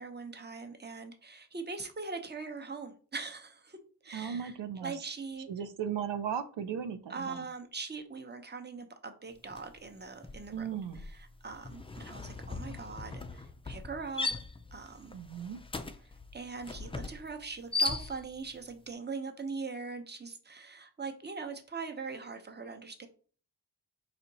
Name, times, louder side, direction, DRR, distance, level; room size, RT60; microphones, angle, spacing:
voice 1, 0.0-3.8 4.0-5.5 7.1-10.7 10.9-14.3 14.7-15.2 16.0-23.1, right 4 dB, 25° right, 6 dB, 0.7 m, -41 dB
voice 2, 4.1-4.9 5.5-7.4 10.5-11.0 15.1-15.6, right 8 dB, 85° right, 9 dB, 0.5 m, -36 dB
sound 1, 9.5-9.8 10.1-18.5, left 3 dB, 15° left, 0.3 m, -38 dB
4.2 x 2.8 x 4.0 m, 0.41 s
wide cardioid pair, 65°, 42 cm